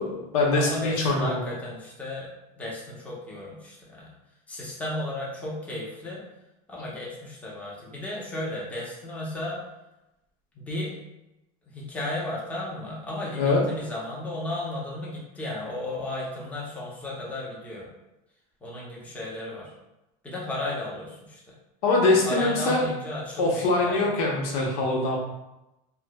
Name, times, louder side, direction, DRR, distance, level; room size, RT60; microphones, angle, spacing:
voice 1, 0.0-1.3 13.4-13.6 21.8-22.9 23.4-25.2, left 2 dB, 85° left, -2 dB, 0.8 m, -23 dB
voice 2, 0.5-2.3 2.5-4.1 4.5-6.3 6.7-9.6 10.5-11.0 11.7-17.9 18.6-19.7 20.2-21.4 22.2-24.1, left 1 dB, 10° left, -5 dB, 0.7 m, -34 dB
4.5 x 2.0 x 2.2 m, 0.94 s
supercardioid pair, 145°, 18 cm